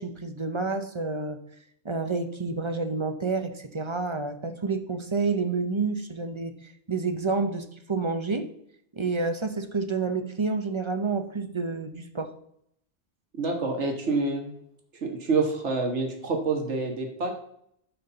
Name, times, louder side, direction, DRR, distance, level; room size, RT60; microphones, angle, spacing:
voice 1, 0.0-1.4 1.8-6.6 6.9-8.5 8.9-12.3, right 4 dB, 30° right, 8 dB, 0.8 m, -29 dB
voice 2, 13.4-14.5 15.0-17.3, right 3 dB, 90° right, 3 dB, 1.7 m, -27 dB
11.0 x 4.3 x 6.7 m, 0.71 s
omnidirectional pair, 1.1 m